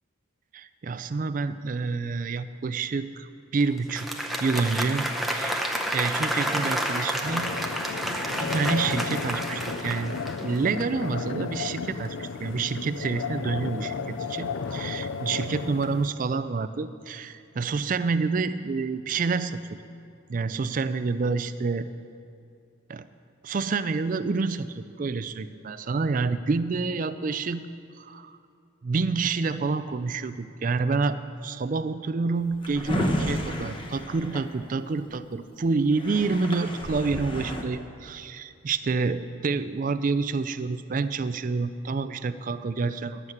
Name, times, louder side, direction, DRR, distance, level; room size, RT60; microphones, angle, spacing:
voice 1, 0.5-3.3 3.5-5.6 5.9-7.5 8.4-19.8 20.3-21.9 22.9-23.1 23.4-27.6 28.0-28.3 28.8-43.2, right 4 dB, 40° right, 12 dB, 0.4 m, -28 dB
Applause, 3.8-10.8, equal, ahead, 0.6 m, -30 dB
sound 1, 7.2-16.1, left 5 dB, 70° left, 0.4 m, -34 dB
Drawer open or close, 32.4-35.1 35.6-35.7 35.9-37.6, equal, 25° left, 0.9 m, -31 dB
11.0 x 7.3 x 7.8 m, 2.5 s
head